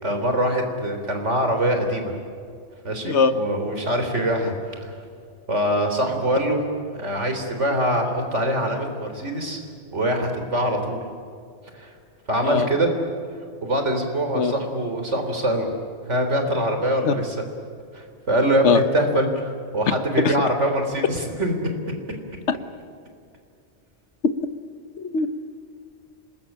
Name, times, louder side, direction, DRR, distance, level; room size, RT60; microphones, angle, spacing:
voice 1, 0.0-2.2 2.8-4.9 5.5-6.6 7.0-9.6 9.9-11.0 11.7-11.9 12.3-12.9 13.6-15.7 16.1-17.4 17.9-21.7, right 1 dB, 80° right, 5 dB, 4.1 m, -23 dB
voice 2, 3.1-3.3 12.4-12.7 14.3-14.5 17.0-17.1 18.6-18.8 20.2-20.3 22.5-22.6 25.0-25.3, left 5 dB, 70° left, 11 dB, 1.4 m, -20 dB
26.5 x 21.0 x 8.9 m, 2.4 s
omnidirectional pair, 1.2 m